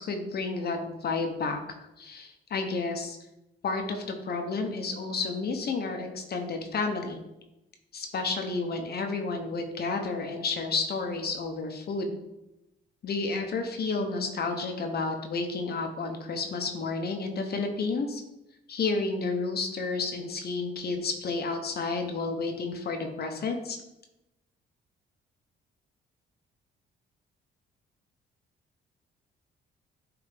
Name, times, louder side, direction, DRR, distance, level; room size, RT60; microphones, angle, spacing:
voice 1, 0.0-1.6 2.0-3.2 3.6-7.2 7.9-12.2 13.0-18.2 18.7-23.8, left 3 dB, 55° left, 4 dB, 0.9 m, -31 dB
9.4 x 3.5 x 3.5 m, 0.93 s
cardioid pair, 90°, 20 cm